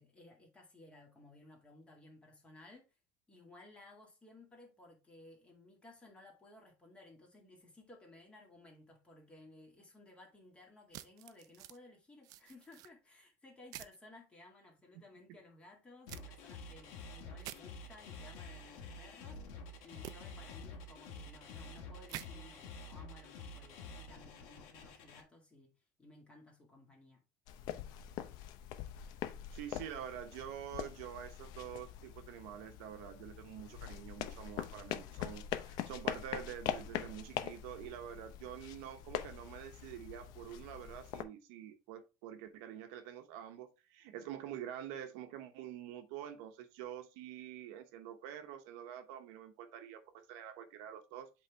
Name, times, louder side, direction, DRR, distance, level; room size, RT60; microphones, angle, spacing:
voice 1, 0.0-2.9 3.3-27.2, left 2 dB, 15° left, 1.9 m, -58 dB
sound 1, 10.9-11.8 12.2-12.9 13.7-14.0 16.1-16.2 17.4-17.6 20.0-20.1 22.1-22.3, right 13 dB, 50° right, 0.5 m, -47 dB
sound 2, 16.1-25.2, left 3 dB, 70° left, 1.8 m, -49 dB
sound 3, 27.5-41.2, left 11 dB, 55° left, 0.6 m, -43 dB
voice 2, 29.5-51.3, right 10 dB, 75° right, 1.0 m, -47 dB
8.1 x 3.6 x 3.4 m
cardioid pair, 165°, 8 cm